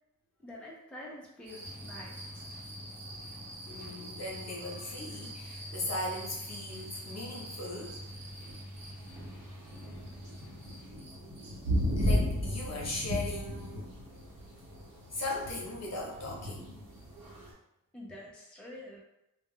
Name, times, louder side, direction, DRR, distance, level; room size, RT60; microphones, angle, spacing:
voice 1, 0.4-2.3 3.8-4.1 9.2-9.3 9.9-10.0 14.9-15.0 17.9-19.0, left 1 dB, 5° left, -3 dB, 0.5 m, -47 dB
sound 1, 1.5-17.5, equal, 75° right, 0.9 m, -37 dB
sound 2, 1.6-10.9, equal, 25° right, 0.9 m, -48 dB
voice 2, 3.7-8.0 12.0-13.9 15.1-16.7, left 1 dB, 50° left, -2 dB, 0.8 m, -38 dB
2.3 x 2.1 x 3.6 m, 0.87 s
wide cardioid pair, 95°, 34 cm